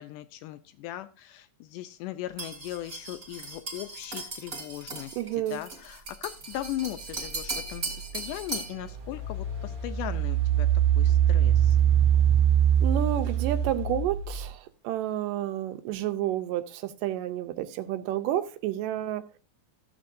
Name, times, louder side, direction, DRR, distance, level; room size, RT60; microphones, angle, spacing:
voice 1, 0.0-1.4 1.7-5.1 5.5-5.7 6.2-7.9 8.1-10.7 11.0-11.5, left 14 dB, 80° left, 11 dB, 1.9 m, -38 dB
sound 1, 2.4-8.8, right 3 dB, 25° right, 2.1 m, -38 dB
voice 2, 5.1-5.6 12.8-19.2, right 12 dB, 80° right, 9 dB, 2.1 m, -30 dB
Engine, 7.8-7.9 8.5-14.4, right 9 dB, 45° right, 1.4 m, -23 dB
13.5 x 7.3 x 2.6 m, 0.36 s
omnidirectional pair, 4.1 m